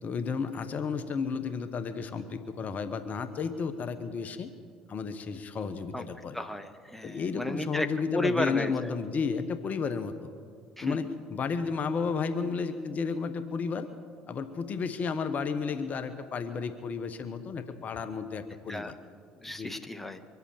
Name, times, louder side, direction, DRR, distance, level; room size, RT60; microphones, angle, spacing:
voice 1, 0.0-4.5 4.9-6.4 7.0-10.3 10.8-13.9 14.3-18.9 19.4-19.7, left 5 dB, 45° left, 10 dB, 1.2 m, -32 dB
voice 2, 6.3-7.9 8.1-8.9 10.8-11.0 18.7-18.9 19.4-20.2, left 1 dB, 5° left, 6 dB, 1.4 m, -33 dB
24.0 x 8.1 x 7.3 m, 2.1 s
hypercardioid pair, 60°, 4 cm